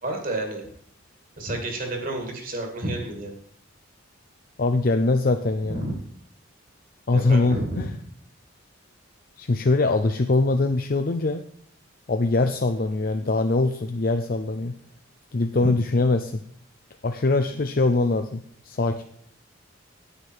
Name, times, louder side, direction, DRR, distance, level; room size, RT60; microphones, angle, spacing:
voice 1, 0.0-0.7 1.4-3.3 5.6-5.9 7.1-7.9 15.6-15.7, right 2 dB, 40° right, 3 dB, 2.3 m, -30 dB
voice 2, 4.6-5.9 7.1-7.9 9.4-11.4 12.1-14.8 15.3-16.4 17.0-19.0, left 3 dB, 45° left, 6 dB, 0.5 m, -23 dB
9.9 x 8.9 x 4.7 m, 0.64 s
head